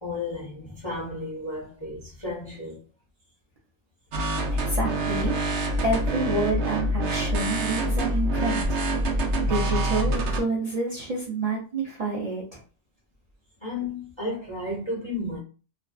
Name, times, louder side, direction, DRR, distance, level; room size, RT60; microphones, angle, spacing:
voice 1, 0.0-2.8 13.6-15.4, left 2 dB, 35° left, 0.5 m, -33 dB
sound 1, 4.1-10.4, right 1 dB, 75° right, 0.9 m, -26 dB
voice 2, 4.6-5.3 5.8-8.8 9.4-12.6, right 2 dB, 40° right, 0.6 m, -28 dB
2.4 x 2.3 x 2.3 m
omnidirectional pair, 1.2 m